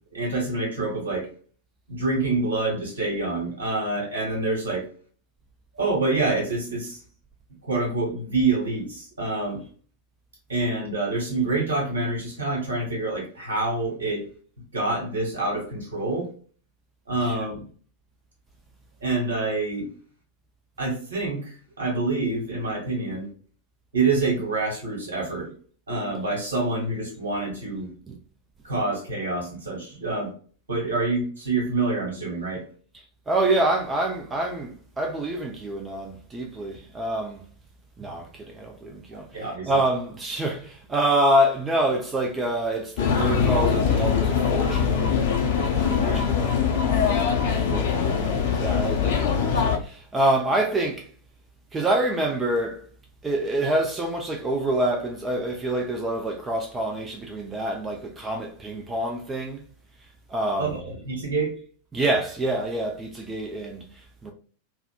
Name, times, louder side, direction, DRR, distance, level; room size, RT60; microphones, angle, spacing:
voice 1, 0.1-1.3 1.9-4.8 5.7-7.0 7.7-9.6 10.5-14.2 14.7-16.3 17.1-17.6 19.0-19.9 20.8-23.3 23.9-25.5 25.9-27.9 28.6-30.3 30.7-32.6 39.3-39.7 46.0-46.1 60.6-61.5, right 3 dB, 70° right, 1.4 m, -26 dB
voice 2, 33.3-37.4 38.0-45.1 45.6-47.1 47.7-51.1 51.7-52.8 53.2-59.6 60.3-60.8 61.9-64.3, right 1 dB, 15° right, 0.5 m, -27 dB
sound 1, 43.0-49.8, left 6 dB, 55° left, 0.6 m, -22 dB
3.5 x 2.2 x 2.2 m
figure-of-eight pair, 90°, 0 cm